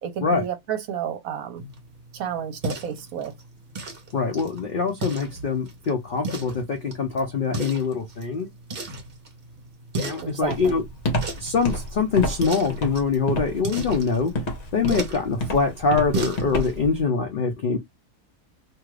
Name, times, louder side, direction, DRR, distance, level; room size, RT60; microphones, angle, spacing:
voice 1, 0.0-1.6 2.1-3.3 10.2-10.7, right 8 dB, 65° right, 1.1 m, -31 dB
sound 1, 1.6-16.8, right 2 dB, 45° right, 0.9 m, -36 dB
voice 2, 4.1-8.5 10.0-10.8 11.4-14.3 14.7-17.8, left 5 dB, 70° left, 0.4 m, -24 dB
Walk footsteps, 10.5-17.0, equal, 50° left, 1.2 m, -28 dB
2.8 x 2.4 x 3.1 m
omnidirectional pair, 1.7 m